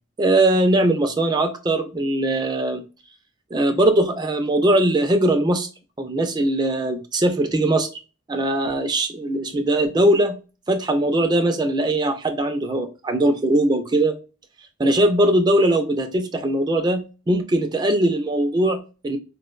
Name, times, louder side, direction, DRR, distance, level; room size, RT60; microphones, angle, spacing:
voice 1, 0.2-2.8 3.5-5.7 6.0-7.9 8.3-10.4 10.7-14.2 14.8-19.2, right 1 dB, 20° right, 7 dB, 0.3 m, -20 dB
4.4 x 2.1 x 2.3 m, 0.32 s
head